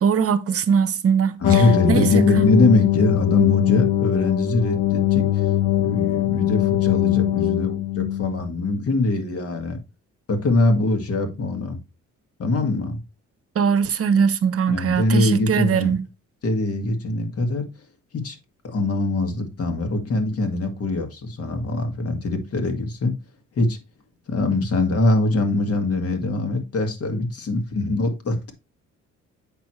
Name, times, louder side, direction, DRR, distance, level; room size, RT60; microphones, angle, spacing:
voice 1, 0.0-1.6 1.9-2.5 13.6-16.0, right 6 dB, 50° right, 0.8 m, -21 dB
sound 1, 1.4-8.5, left 13 dB, 75° left, 0.6 m, -21 dB
voice 2, 1.4-5.5 5.8-9.8 10.3-11.8 12.4-13.0 14.7-15.9 16.4-17.7 18.1-18.4 18.6-23.1 23.6-23.8 24.3-28.5, left 2 dB, 50° left, 1.9 m, -22 dB
8.0 x 6.1 x 3.1 m
cardioid pair, 90°, 30 cm